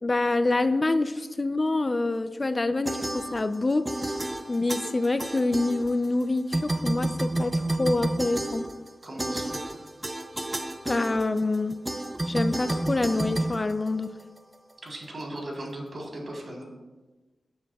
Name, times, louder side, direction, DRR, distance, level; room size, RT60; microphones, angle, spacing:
voice 1, 0.0-3.0 3.3-4.2 4.5-8.7 10.9-11.7 12.3-14.1, left 2 dB, 35° left, 10 dB, 0.5 m, -26 dB
sound 1, 2.9-3.6 3.9-6.2 6.5-14.4, right 1 dB, 20° right, 0.7 m, -30 dB
voice 2, 9.0-9.6 14.8-16.7, right 1 dB, 55° right, -1 dB, 3.8 m, -37 dB
18.0 x 9.5 x 2.4 m, 1.2 s
cardioid pair, 55°, 0 cm